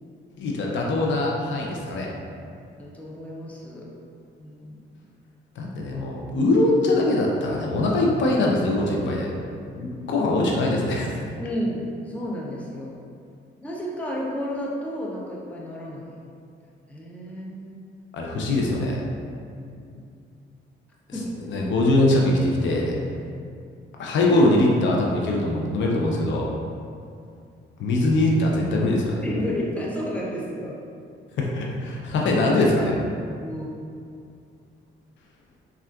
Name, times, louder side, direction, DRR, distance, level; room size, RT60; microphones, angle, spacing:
voice 1, 0.4-2.1 5.6-9.3 9.7-11.2 18.1-19.0 21.5-23.0 24.0-26.5 27.8-29.2 31.4-33.0, left 2 dB, 70° left, -2 dB, 0.5 m, -22 dB
voice 2, 2.8-3.9 4.4-4.8 11.4-13.0 13.6-16.2 16.9-17.8 19.5-20.0 21.1-21.3 29.2-30.8 33.4-33.7, equal, 5° left, -4 dB, 0.5 m, -32 dB
3.5 x 2.3 x 2.2 m, 2.4 s
cardioid pair, 90°, 20 cm